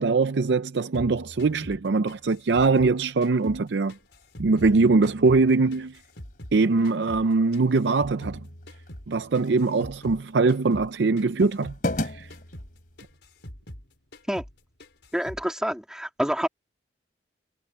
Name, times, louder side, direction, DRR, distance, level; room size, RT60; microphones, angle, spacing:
voice 1, 0.0-3.9 4.4-5.9 6.5-8.4 9.1-11.7 12.0-12.3, right 3 dB, 75° right, 0.5 m, -22 dB
sound 1, 0.9-3.6 3.9-6.6 6.8-10.2 10.5-10.9 11.2-13.9 14.1-14.5 14.8-15.5, equal, 75° left, 4.1 m, -43 dB
sound 2, 2.9-13.2, left 1 dB, 50° left, 3.3 m, -40 dB
voice 2, 15.1-16.5, equal, 5° right, 2.5 m, -27 dB
head